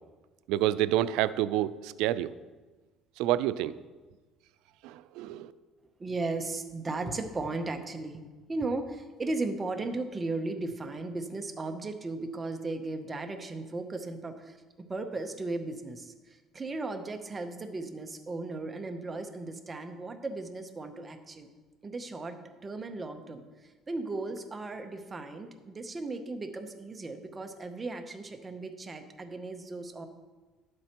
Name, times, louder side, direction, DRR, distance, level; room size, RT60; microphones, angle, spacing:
voice 1, 0.5-2.3 3.2-3.8 4.8-5.5, right 13 dB, 85° right, 15 dB, 0.3 m, -28 dB
voice 2, 6.0-8.2 8.5-21.5 21.8-30.1, right 3 dB, 20° right, 6 dB, 0.7 m, -36 dB
11.0 x 7.6 x 2.9 m, 1.3 s
cardioid pair, 145°, 0 cm